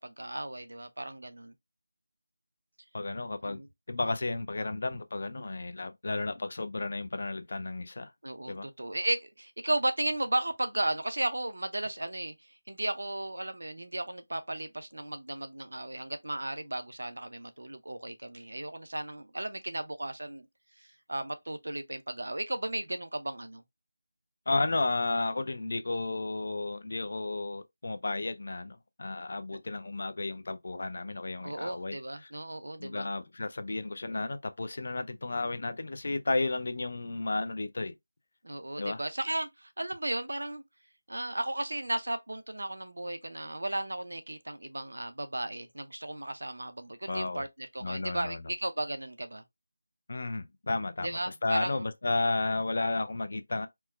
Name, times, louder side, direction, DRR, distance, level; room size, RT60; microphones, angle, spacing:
voice 1, 0.0-1.5 3.4-3.7 8.2-20.5 20.8-23.6 31.4-33.1 38.4-40.6 41.1-49.4 51.0-51.8, right 1 dB, 90° right, 0.6 m, -35 dB
voice 2, 2.9-3.6 3.9-8.1 8.5-8.7 24.5-32.3 32.8-37.9 38.8-39.0 47.1-47.4 47.8-48.5 50.1-53.7, left 2 dB, 50° left, 0.4 m, -33 dB
4.4 x 2.1 x 2.2 m
figure-of-eight pair, 175°, 0 cm